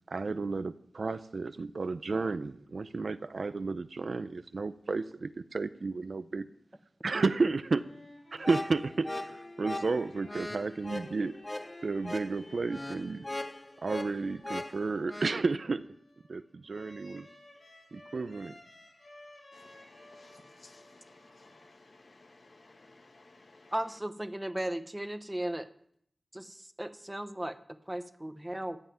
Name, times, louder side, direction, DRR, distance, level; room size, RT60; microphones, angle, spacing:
voice 1, 0.1-6.5 7.0-7.9 8.3-11.4 11.8-13.2 13.8-15.8 16.3-17.3 17.9-18.5, right 3 dB, 75° right, 0.6 m, -32 dB
sound 1, 7.4-22.1, left 2 dB, 85° left, 4.1 m, -55 dB
sound 2, 8.4-15.4, left 1 dB, 25° left, 0.6 m, -39 dB
voice 2, 19.5-23.9, left 2 dB, 65° left, 1.2 m, -57 dB
voice 3, 23.7-25.7 26.3-28.8, right 1 dB, 15° right, 0.9 m, -36 dB
14.0 x 5.7 x 9.2 m
wide cardioid pair, 60°, 0 cm